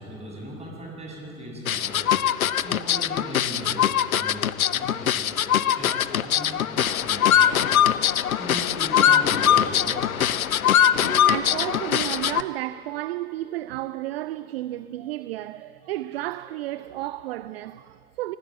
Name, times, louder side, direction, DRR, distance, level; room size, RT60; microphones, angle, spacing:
voice 1, 0.0-2.2 2.6-7.8 8.3-10.3, right 1 dB, 15° right, 7.1 m, -38 dB
sound 1, 1.7-12.4, left 10 dB, 75° left, 0.7 m, -22 dB
sound 2, 7.4-7.6 8.9-9.1 9.4-9.7 11.0-11.7, right 2 dB, 65° right, 7.1 m, -36 dB
voice 2, 10.2-10.6 11.0-18.4, right 15 dB, 45° right, 0.5 m, -32 dB
30.0 x 19.0 x 7.6 m
figure-of-eight pair, 90°, 43 cm